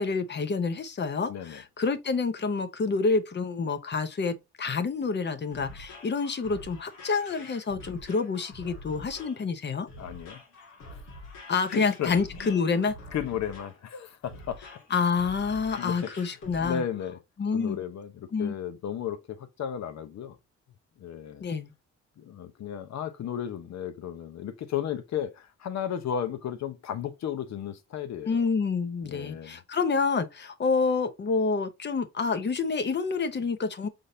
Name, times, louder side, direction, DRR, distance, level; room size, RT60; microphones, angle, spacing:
voice 1, 0.0-9.9 11.5-12.9 14.9-16.8 17.4-17.8 18.3-18.6 21.4-21.7 28.3-33.9, left 4 dB, 35° left, 0.8 m, -28 dB
voice 2, 1.3-1.6 10.0-10.4 10.9-11.0 11.7-12.1 12.4-12.5 12.8-14.6 15.8-16.1 16.6-17.2 17.5-20.4 21.0-21.5 22.2-28.5 29.0-29.6, left 9 dB, 65° left, 0.9 m, -34 dB
sound 1, 5.2-16.7, left 2 dB, 85° left, 1.9 m, -46 dB
5.1 x 3.8 x 2.6 m
cardioid pair, 90°, 30 cm